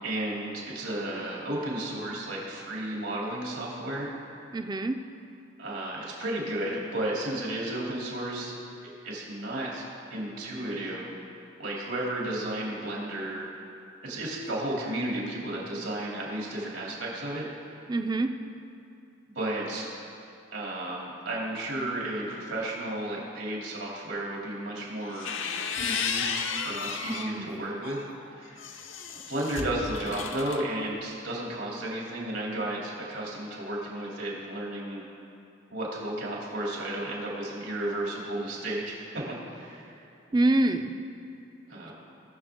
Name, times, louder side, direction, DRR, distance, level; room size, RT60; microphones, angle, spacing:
voice 1, 0.0-4.1 5.6-8.5 9.0-9.8 10.1-11.1 11.6-13.5 14.0-17.4 19.3-19.9 20.5-25.4 25.8-26.3 26.6-28.1 28.4-28.9 29.3-35.0 35.7-39.9 41.7-41.9, right 1 dB, 80° right, -4 dB, 3.0 m, -33 dB
voice 2, 4.5-5.0 17.9-18.3 27.1-27.5 40.3-40.9, right 2 dB, 20° right, 7 dB, 0.4 m, -26 dB
sound 1, 25.0-27.3 27.8-30.6, left 6 dB, 80° left, 0.7 m, -33 dB
19.0 x 6.8 x 3.7 m, 2.7 s
head